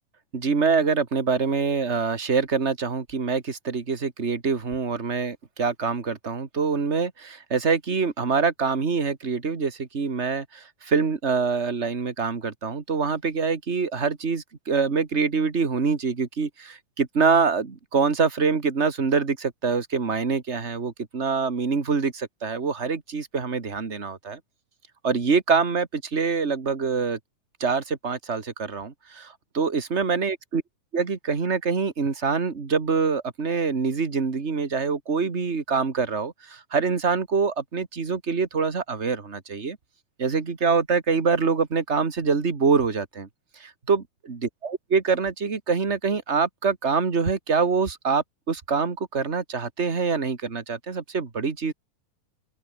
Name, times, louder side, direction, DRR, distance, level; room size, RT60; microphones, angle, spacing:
voice 1, 0.3-24.4 25.0-27.2 27.6-30.6 30.9-39.8 40.2-43.3 43.6-51.7, right 5 dB, 25° right, 1.7 m, -25 dB
open air
omnidirectional pair, 3.9 m